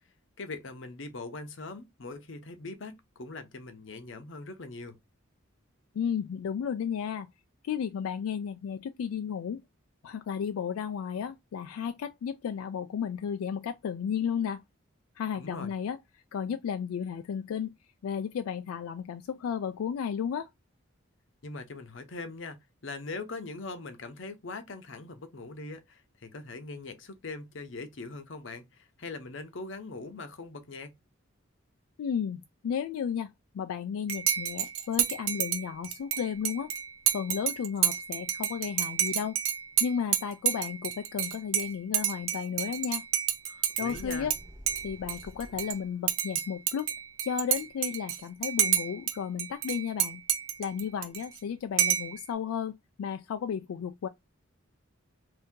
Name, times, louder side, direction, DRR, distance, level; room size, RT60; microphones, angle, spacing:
voice 1, 0.4-5.0 15.3-15.7 21.4-30.9 43.5-44.3, left 3 dB, 60° left, 0.7 m, -41 dB
voice 2, 5.9-7.3 7.6-9.6 10.0-14.6 15.2-16.0 16.3-17.7 18.0-20.5 32.0-36.7 37.1-39.4 39.8-43.1 43.8-44.3 44.8-46.9 47.2-50.2 50.6-54.1, left 7 dB, 85° left, 0.3 m, -33 dB
Dishes pots and pans / Cutlery silverware / Chink clink, 34.1-44.4 44.7-45.8 46.1-49.1 49.4-51.4 51.8-52.2, right 10 dB, 80° right, 0.5 m, -29 dB
sound 1, 43.8-46.0, equal, 20° right, 1.1 m, -48 dB
2.7 x 2.7 x 3.5 m
head